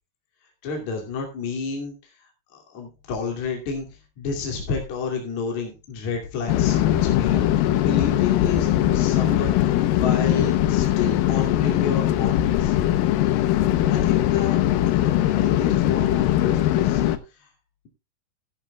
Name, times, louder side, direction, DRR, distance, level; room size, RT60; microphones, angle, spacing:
voice 1, 0.6-2.1 2.5-12.8 13.9-17.5, left 4 dB, 50° left, 1 dB, 3.7 m, -31 dB
sound 1, 6.5-17.2, left 13 dB, 75° left, 2.3 m, -20 dB
15.5 x 12.0 x 2.3 m, 0.26 s
omnidirectional pair, 4.6 m